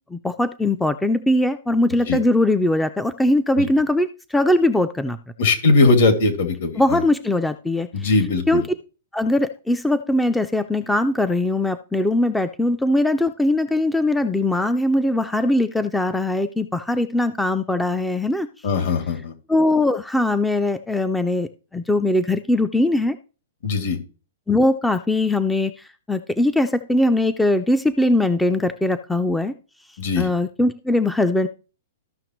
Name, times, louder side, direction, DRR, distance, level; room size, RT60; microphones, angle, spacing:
voice 1, 0.1-5.2 6.7-8.1 8.5-8.6 9.1-18.5 19.5-23.2 24.5-25.7 26.1-29.5 30.2-31.5, left 1 dB, 5° left, 11 dB, 0.3 m, -21 dB
voice 2, 5.4-7.0 7.9-8.6 18.6-19.3 23.6-24.0 30.0-30.3, left 3 dB, 65° left, 5 dB, 2.3 m, -19 dB
14.0 x 5.7 x 3.0 m, 0.35 s
hypercardioid pair, 155°, 0 cm